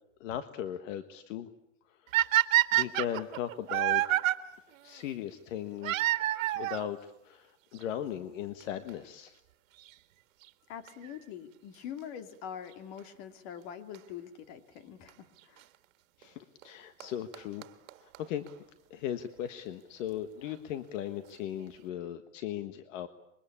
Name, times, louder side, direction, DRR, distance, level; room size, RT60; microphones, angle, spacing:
voice 1, 0.2-1.5 1.9-2.2 2.7-4.2 4.8-6.1 6.5-9.4 16.2-17.6 18.0-18.5 18.9-23.1, left 10 dB, 70° left, 10 dB, 1.5 m, -38 dB
sound 1, 2.1-4.3 5.8-6.9 7.8-7.9 8.6-8.7 8.9-9.0 10.9-11.1 13.9-14.0 15.1-15.2 16.6-16.7 17.0-17.1 17.3-17.4 17.6-17.7 17.9-18.0 18.1-18.2 18.5-18.6, right 15 dB, 75° right, 1.8 m, -27 dB
voice 2, 10.7-15.6, left 9 dB, 50° left, 8 dB, 2.6 m, -44 dB
25.0 x 23.0 x 8.7 m, 0.85 s
supercardioid pair, 155°, 40 cm